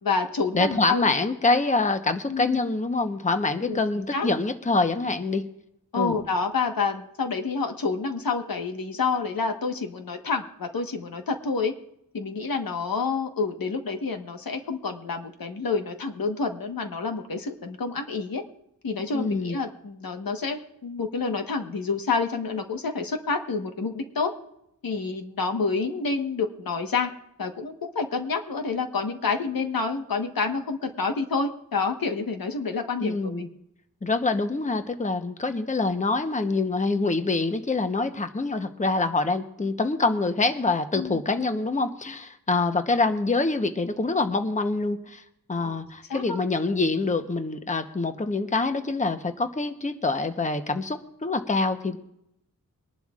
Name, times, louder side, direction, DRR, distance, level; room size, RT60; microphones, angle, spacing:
voice 1, 0.0-1.0 2.3-2.6 3.6-3.8 4.1-4.3 5.9-11.7 12.1-18.4 18.8-24.3 24.8-27.1 27.4-33.5 40.9-41.2 45.6-45.8 46.1-46.4, left 4 dB, 80° left, 5 dB, 1.3 m, -28 dB
voice 2, 0.5-5.4 6.0-6.2 19.1-19.6 33.0-33.5 34.0-45.2 45.5-52.0, left 3 dB, 20° left, 7 dB, 0.9 m, -25 dB
23.5 x 11.5 x 2.4 m, 0.78 s
wide cardioid pair, 105°, 35 cm